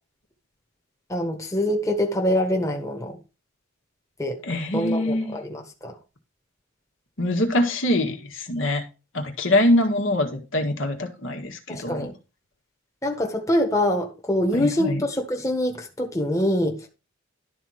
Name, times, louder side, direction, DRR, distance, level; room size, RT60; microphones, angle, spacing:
voice 1, 1.1-3.2 4.2-4.4 4.7-6.0 11.7-12.1 13.0-16.9, left 1 dB, 15° left, 1.5 m, -25 dB
voice 2, 4.4-5.4 7.2-8.9 9.1-12.1 14.5-15.0, left 1 dB, 65° left, 1.9 m, -24 dB
12.0 x 4.3 x 6.4 m
head